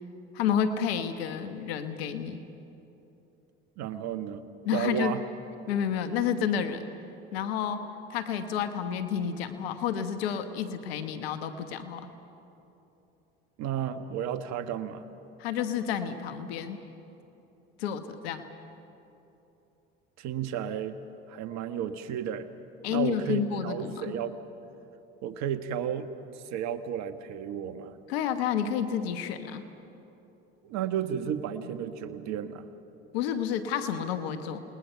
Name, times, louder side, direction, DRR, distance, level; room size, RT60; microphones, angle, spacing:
voice 1, 0.3-2.4 4.7-5.1 5.7-6.8 7.3-7.8 8.1-12.1 15.4-16.8 17.8-18.4 22.8-24.1 28.1-29.6 33.1-34.6, left 8 dB, 85° left, 9 dB, 1.2 m, -30 dB
voice 2, 3.8-4.4 4.7-5.2 13.6-15.0 20.2-20.9 21.3-22.5 22.9-24.4 25.2-26.1 26.3-28.0 30.6-32.6, right 9 dB, 65° right, 10 dB, 1.4 m, -33 dB
28.5 x 20.5 x 5.7 m, 3.0 s
hypercardioid pair, 70°, 30 cm